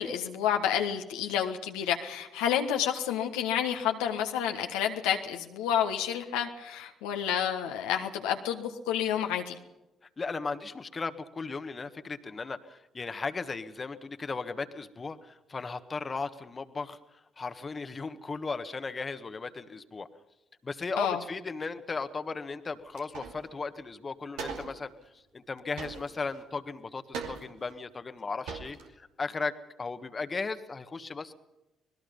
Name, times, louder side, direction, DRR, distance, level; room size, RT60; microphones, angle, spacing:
voice 1, 0.0-9.6 21.0-21.2, left 9 dB, 75° left, 4 dB, 1.4 m, -29 dB
voice 2, 10.2-20.1 20.6-31.3, left 4 dB, 35° left, 9 dB, 1.6 m, -36 dB
sound 1, 23.0-23.5 23.8-23.9 24.4-24.9 25.8-26.4 27.1-27.7 28.2-28.3 28.5-28.9, right 5 dB, 70° right, 2.6 m, -40 dB
26.0 x 20.0 x 5.5 m, 0.96 s
hypercardioid pair, 45°, 0 cm